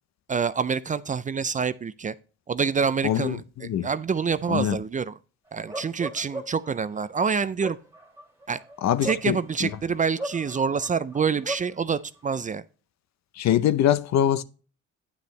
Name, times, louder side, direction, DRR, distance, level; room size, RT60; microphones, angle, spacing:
voice 1, 0.3-2.1 2.5-5.1 5.5-7.8 8.5-8.6 9.0-12.6, right 6 dB, 25° right, 0.4 m, -27 dB
voice 2, 3.0-3.9 4.5-4.8 8.8-9.7 13.4-14.4, left 10 dB, 65° left, 0.6 m, -24 dB
Bark, 5.7-6.7 7.4-9.7 10.2-11.7, right 1 dB, 10° right, 2.2 m, -36 dB
9.6 x 6.7 x 3.1 m
cardioid pair, 90°, 30 cm